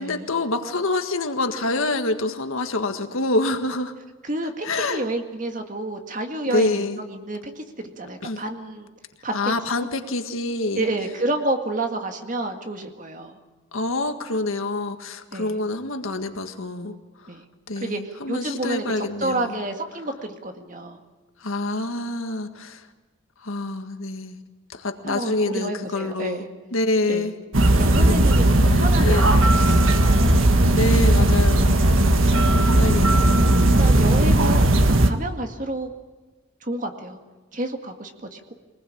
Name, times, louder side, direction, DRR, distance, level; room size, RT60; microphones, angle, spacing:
voice 1, 0.0-3.9 4.6-5.0 6.5-7.0 8.2-8.4 9.3-10.9 13.7-16.9 17.7-19.6 21.4-22.8 23.4-24.4 24.7-26.4 26.7-27.4 27.6-28.2 28.7-29.3 30.7-31.8 32.6-33.6, left 2 dB, 85° left, 7 dB, 1.8 m, -26 dB
voice 2, 4.2-8.9 9.2-9.4 10.8-13.4 15.3-15.6 17.3-17.4 17.8-18.0 18.3-21.0 25.1-26.5 27.1-27.3 27.8-30.3 33.3-35.9 36.6-37.2 37.5-38.5, right 1 dB, 40° right, 5 dB, 2.0 m, -30 dB
sound 1, 27.5-35.1, right 1 dB, 80° right, 1.6 m, -17 dB
23.0 x 20.0 x 8.7 m, 1.3 s
head